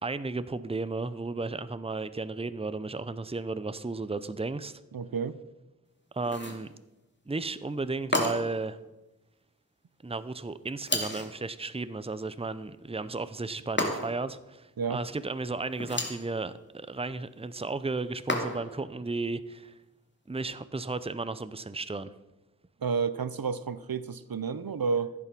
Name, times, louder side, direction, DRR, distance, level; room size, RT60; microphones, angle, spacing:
voice 1, 0.0-4.8 6.1-6.7 7.3-8.8 10.0-19.7 20.3-22.1, right 3 dB, 15° right, 14 dB, 0.6 m, -34 dB
voice 2, 4.9-5.4 14.8-15.0 22.8-25.1, right 5 dB, 75° right, 15 dB, 0.7 m, -30 dB
sound 1, 6.2-6.7 8.1-8.6 10.9-11.4 13.8-14.3 15.7-16.3 18.3-18.8, left 1 dB, 30° left, 2.3 m, -31 dB
15.0 x 8.2 x 6.1 m, 1.0 s
wide cardioid pair, 45°, 36 cm